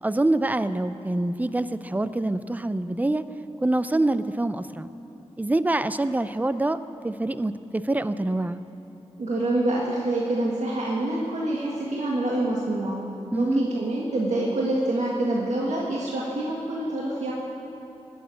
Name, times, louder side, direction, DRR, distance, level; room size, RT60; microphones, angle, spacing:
voice 1, 0.0-3.2 3.6-4.9 5.4-6.8 7.0-8.6 13.3-13.7, right 2 dB, 15° right, 13 dB, 0.5 m, -25 dB
voice 2, 9.2-13.0 13.3-17.3, right 1 dB, 85° right, -4 dB, 1.8 m, -26 dB
18.0 x 7.9 x 9.1 m, 2.9 s
wide cardioid pair, 90°, 12 cm